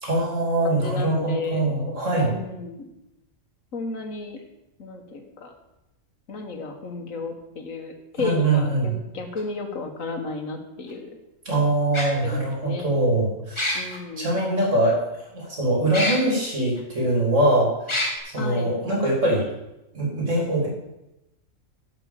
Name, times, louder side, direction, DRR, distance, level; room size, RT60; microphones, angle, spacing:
voice 1, 0.0-2.3 8.2-8.9 11.4-15.0 15.3-17.7 18.3-19.4 19.9-20.7, right 1 dB, 70° right, -2 dB, 3.4 m, -23 dB
voice 2, 0.6-1.6 2.1-2.9 3.7-4.4 4.8-5.5 6.3-11.1 12.2-12.9 13.7-14.4 18.4-18.7, left 3 dB, 85° left, 5 dB, 1.8 m, -33 dB
sound 1, 9.4-9.5 10.9-11.0 11.9-12.1 13.6-14.0 15.9-16.2 16.8-16.9 17.9-18.1, left 1 dB, 20° left, 2.0 m, -25 dB
11.0 x 6.0 x 7.3 m, 0.94 s
omnidirectional pair, 1.3 m